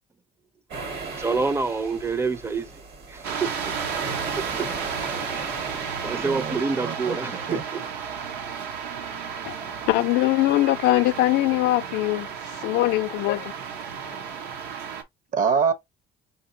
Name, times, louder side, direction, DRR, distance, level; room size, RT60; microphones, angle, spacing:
sound 1, 0.7-6.6, right 4 dB, 70° right, 1.6 m, -36 dB
voice 1, 1.2-2.7 3.1-3.5 4.6-4.7 6.0-7.9, right 4 dB, 15° right, 0.4 m, -27 dB
sound 2, 3.2-15.0, right 6 dB, 85° right, 0.9 m, -33 dB
voice 2, 6.2-7.2 7.5-7.6 15.3-15.7, right 6 dB, 55° right, 0.8 m, -26 dB
voice 3, 9.9-12.3 12.6-13.5, left 16 dB, 85° left, 0.4 m, -21 dB
5.0 x 2.7 x 2.6 m
cardioid pair, 110°, 17 cm